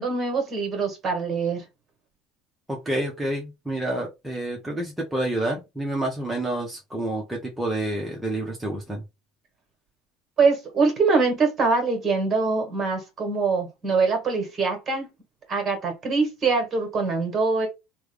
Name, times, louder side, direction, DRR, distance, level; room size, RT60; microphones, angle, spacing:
voice 1, 0.0-1.6 10.4-15.1 15.5-17.7, right 4 dB, 30° right, 1.6 m, -23 dB
voice 2, 2.7-9.0, right 1 dB, 5° right, 0.9 m, -28 dB
3.4 x 2.2 x 3.3 m
supercardioid pair, 115°, 0 cm